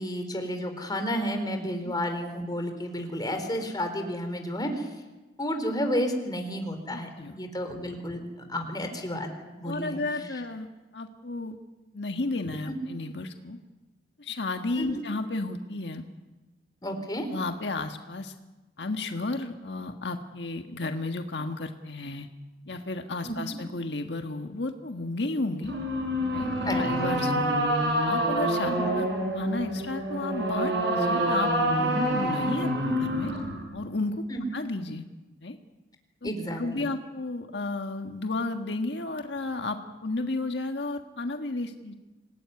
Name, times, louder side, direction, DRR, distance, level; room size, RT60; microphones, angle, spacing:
voice 1, 0.0-4.9 5.4-9.3 9.6-10.0 14.8-15.0 16.8-17.3 23.2-23.4 26.7-26.8 28.7-28.9 34.3-34.4 36.2-36.9, equal, 25° left, 5 dB, 4.1 m, -31 dB
voice 2, 6.9-7.4 9.6-10.7 10.9-11.6 11.9-13.6 14.2-16.1 17.3-18.3 18.8-22.3 22.7-25.7 26.3-27.6 28.0-29.1 29.3-33.3 33.7-34.2 34.5-35.0 35.4-35.6 36.2-36.3 36.6-41.9, left 2 dB, 80° left, 5 dB, 1.5 m, -33 dB
sound 1, 25.6-33.6, right 1 dB, 80° right, 7.3 m, -27 dB
26.5 x 19.0 x 9.7 m, 1.1 s
head